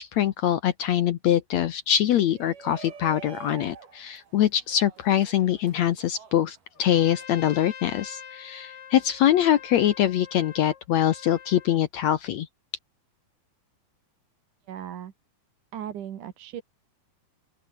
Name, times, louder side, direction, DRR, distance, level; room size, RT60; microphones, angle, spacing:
voice 1, 0.0-12.5, left 11 dB, 75° left, 1.7 m, -23 dB
Shout, 2.1-7.2, right 6 dB, 80° right, 6.1 m, -46 dB
Trumpet, 6.7-11.8, left 8 dB, 55° left, 3.3 m, -45 dB
voice 2, 14.7-15.1 15.7-16.6, right 10 dB, 60° right, 3.1 m, -37 dB
open air
omnidirectional pair, 4.3 m